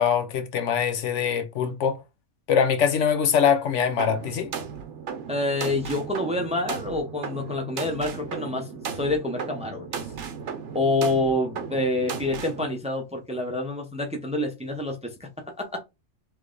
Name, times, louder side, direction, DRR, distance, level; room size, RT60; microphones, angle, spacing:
voice 1, 0.0-2.0 2.5-4.5, left 7 dB, 75° left, 1.0 m, -23 dB
sound 1, 4.0-12.6, right 6 dB, 70° right, 1.1 m, -36 dB
voice 2, 5.3-9.9 10.7-15.3 15.6-15.8, left 2 dB, 5° right, 0.6 m, -27 dB
3.3 x 3.2 x 3.8 m
omnidirectional pair, 1.3 m